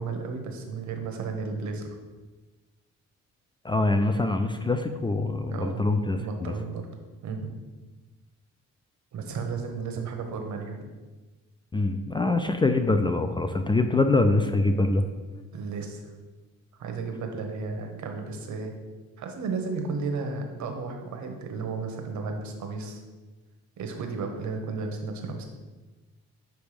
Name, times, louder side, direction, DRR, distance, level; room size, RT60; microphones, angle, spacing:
voice 1, 0.0-1.9 5.5-5.9 6.2-6.9 7.2-7.5 9.1-10.8 15.5-16.1 16.8-18.7 19.2-23.0 23.8-25.4, right 4 dB, 70° right, 4 dB, 1.0 m, -33 dB
voice 2, 3.6-6.5 11.7-15.0, left 2 dB, 15° left, 7 dB, 0.3 m, -24 dB
6.2 x 3.4 x 4.9 m, 1.2 s
cardioid pair, 90°, 30 cm